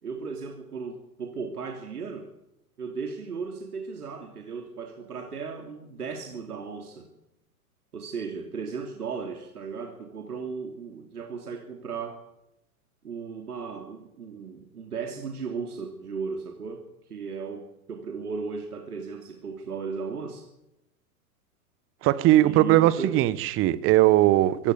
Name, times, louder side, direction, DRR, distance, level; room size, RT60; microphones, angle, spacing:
voice 1, 0.0-2.3 2.8-7.1 7.9-12.2 13.0-20.5 22.4-23.2, right 5 dB, 75° right, 4 dB, 3.2 m, -36 dB
voice 2, 22.0-24.7, right 15 dB, 30° right, 18 dB, 1.3 m, -20 dB
23.5 x 16.0 x 8.4 m, 0.88 s
hypercardioid pair, 115°, 45 cm